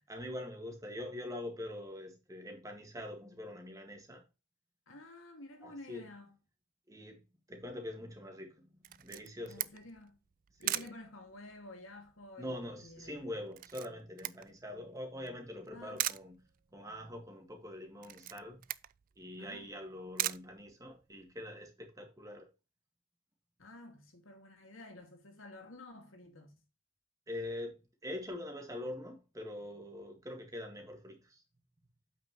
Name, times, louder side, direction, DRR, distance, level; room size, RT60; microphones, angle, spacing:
voice 1, 0.0-4.2 5.6-6.1 6.9-7.2 7.5-9.7 10.5-10.9 12.4-16.4 16.7-18.6 19.2-22.5 27.3-31.4, left 1 dB, 15° right, 1.9 m, -44 dB
voice 2, 4.9-6.4 9.5-10.2 10.6-13.3 15.7-16.1 19.4-19.7 23.6-26.6, left 2 dB, 75° left, 2.3 m, -51 dB
Camera, 8.8-21.3, right 14 dB, 40° right, 0.3 m, -42 dB
8.4 x 5.9 x 3.1 m
head